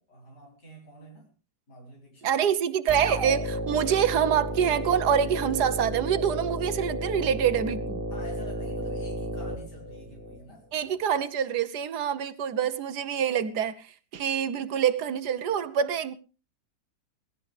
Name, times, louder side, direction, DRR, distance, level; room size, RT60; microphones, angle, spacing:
voice 1, 0.0-1.3 1.7-2.5 7.2-7.5 8.1-10.7, equal, 80° left, 5.8 m, -48 dB
voice 2, 2.2-8.0 10.7-16.1, right 8 dB, 75° right, 1.5 m, -26 dB
sound 1, 2.9-10.4, right 1 dB, 30° right, 2.1 m, -33 dB
19.5 x 16.5 x 3.3 m
omnidirectional pair, 1.8 m